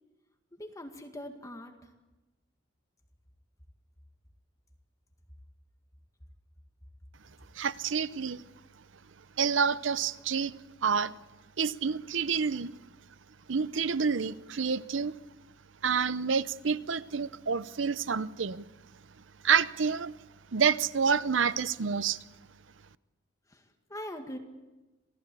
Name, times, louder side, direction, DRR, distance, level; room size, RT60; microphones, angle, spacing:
voice 1, 0.5-1.9 23.5-23.6 23.9-24.4, left 1 dB, 20° left, 2.0 m, -42 dB
voice 2, 7.6-8.4 9.4-10.6 10.8-11.1 11.6-12.7 13.5-15.1 15.8-18.6 19.4-20.1 20.5-22.2, right 6 dB, 80° right, 0.7 m, -28 dB
28.0 x 18.0 x 8.5 m
head